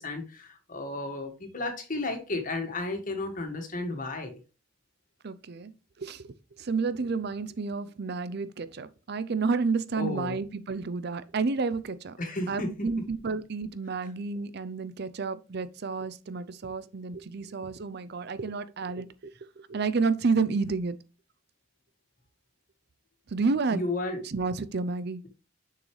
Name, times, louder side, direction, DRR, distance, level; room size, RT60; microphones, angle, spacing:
voice 1, 0.0-4.4 9.9-10.4 12.2-12.9 23.7-24.2, left 2 dB, 45° left, 1.9 m, -33 dB
voice 2, 5.2-5.7 6.0-12.2 12.5-21.0 23.3-23.8 24.2-25.2, right 4 dB, 55° right, 0.5 m, -30 dB
6.7 x 6.3 x 3.2 m
head